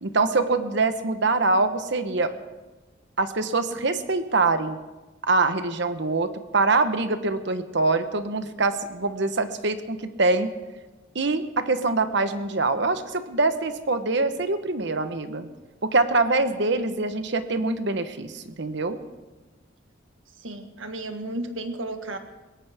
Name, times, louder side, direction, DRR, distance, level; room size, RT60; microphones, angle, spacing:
voice 1, 0.0-2.3 3.2-4.8 5.2-10.5 11.1-15.5 15.8-19.0, right 3 dB, 60° right, 9 dB, 1.1 m, -24 dB
voice 2, 20.4-22.2, right 1 dB, 75° right, 6 dB, 1.5 m, -33 dB
21.5 x 17.5 x 3.6 m, 1.2 s
head